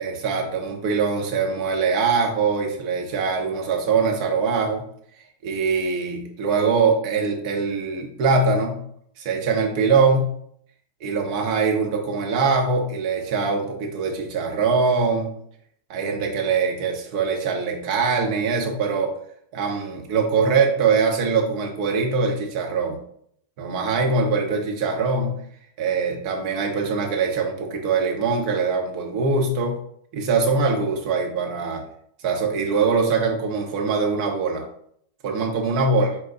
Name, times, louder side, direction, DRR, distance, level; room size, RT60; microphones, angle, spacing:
voice 1, 0.0-4.8 5.4-8.8 9.2-10.3 11.0-15.3 15.9-19.1 19.5-23.0 23.6-25.4 25.8-29.8 30.1-31.8 32.2-34.6 35.2-36.1, right 4 dB, 45° right, 2 dB, 0.9 m, -22 dB
4.2 x 2.2 x 4.0 m, 0.67 s
figure-of-eight pair, 90°, 0 cm